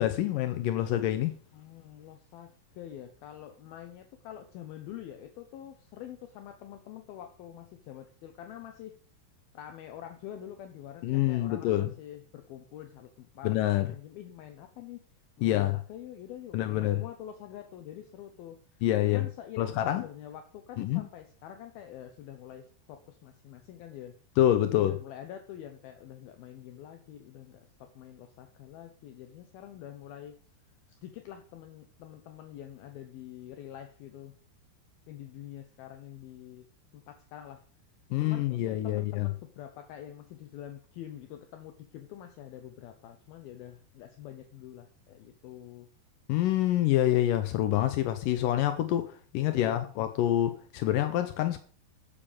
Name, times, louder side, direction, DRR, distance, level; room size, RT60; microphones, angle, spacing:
voice 1, 0.0-1.4 11.0-11.9 13.4-13.9 15.4-15.8 16.5-17.0 18.8-19.3 19.6-20.0 20.8-21.1 24.4-24.9 38.1-39.3 46.3-51.6, left 13 dB, 85° left, 1.9 m, -26 dB
voice 2, 1.5-9.0 9.5-13.5 13.8-15.0 15.4-15.6 15.9-24.1 24.7-30.4 31.0-34.3 35.1-36.7 36.9-37.6 38.2-45.9 49.4-49.9, left 11 dB, 70° left, 2.5 m, -46 dB
14.5 x 7.0 x 5.1 m
omnidirectional pair, 4.9 m